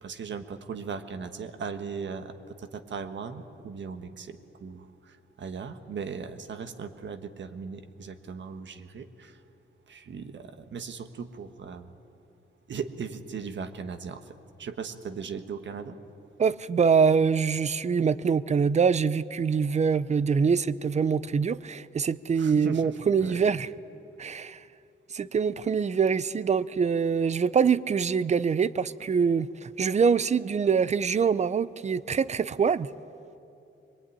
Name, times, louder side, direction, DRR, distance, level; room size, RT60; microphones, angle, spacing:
voice 1, 0.0-2.3 2.6-9.4 9.9-11.9 12.7-14.3 14.6-15.9 22.4-23.4, right 6 dB, 65° right, 1.5 m, -38 dB
voice 2, 16.4-23.7 24.2-24.6 25.1-32.9, right 6 dB, 35° right, 0.5 m, -24 dB
23.5 x 23.0 x 9.8 m
wide cardioid pair, 175°, 20 cm